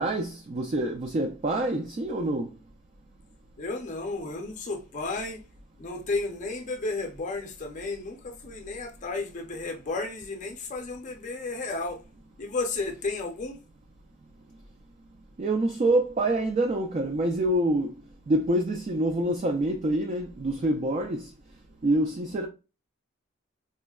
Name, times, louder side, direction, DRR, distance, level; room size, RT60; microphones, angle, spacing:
voice 1, 0.0-2.6 15.4-17.9 18.3-21.3 21.8-22.5, right 1 dB, 35° right, 0.3 m, -26 dB
voice 2, 3.6-5.4 5.8-12.0 12.4-13.6, left 3 dB, 40° left, 0.6 m, -33 dB
4.2 x 2.1 x 2.3 m
head